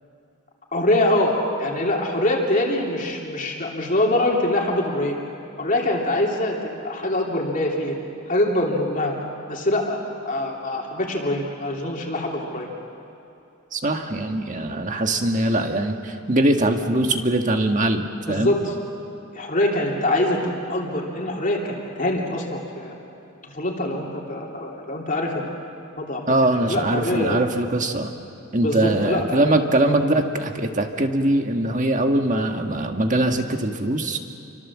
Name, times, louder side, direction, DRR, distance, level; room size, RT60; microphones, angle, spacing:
voice 1, 0.7-5.2 5.6-7.9 8.3-9.1 9.5-10.0 10.2-12.7 18.3-18.6 19.3-22.9 23.5-25.5 26.0-26.3 26.7-27.4 28.6-29.4, left 1 dB, 40° left, -1 dB, 3.1 m, -24 dB
voice 2, 13.7-18.5 26.3-28.1 28.5-34.2, right 1 dB, 35° right, 4 dB, 1.7 m, -22 dB
29.5 x 25.0 x 7.4 m, 2.6 s
head